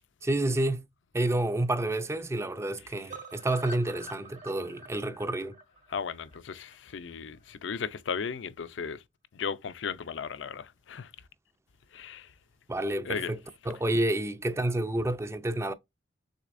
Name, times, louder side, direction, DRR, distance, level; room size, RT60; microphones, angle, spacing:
voice 1, 0.2-0.9 1.1-5.6 12.7-13.4 13.7-15.7, right 1 dB, 15° right, 0.4 m, -29 dB
sound 1, 3.1-7.1 7.5-7.6 7.8-7.9 8.2-8.3, right 2 dB, 45° right, 0.9 m, -46 dB
voice 2, 5.9-9.0 9.3-11.1 11.9-12.3 13.1-13.3, left 6 dB, 70° left, 0.5 m, -36 dB
6.4 x 3.3 x 2.5 m
head